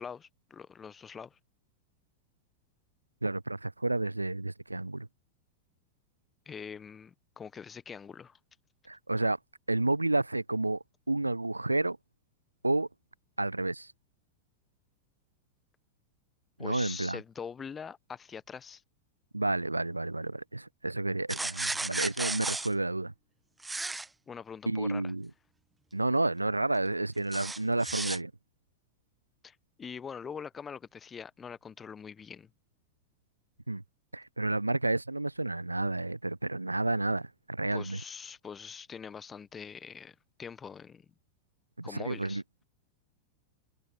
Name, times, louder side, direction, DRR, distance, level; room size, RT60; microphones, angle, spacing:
voice 1, 0.0-1.4 6.4-8.4 16.6-18.8 24.3-25.1 29.4-32.5 37.7-41.0 41.8-42.4, left 6 dB, 20° left, 1.4 m, -43 dB
voice 2, 3.2-5.1 8.9-9.4 9.7-12.0 12.6-12.9 13.4-13.9 16.6-17.2 19.3-23.1 24.7-25.3 25.9-28.3 33.7-33.8 34.1-38.0 41.8-42.6, right 2 dB, 85° right, 1.1 m, -30 dB
sound 1, 21.3-22.7 23.6-24.1 27.3-28.2, right 2 dB, 10° right, 1.1 m, -34 dB
figure-of-eight pair, 90°, 0 cm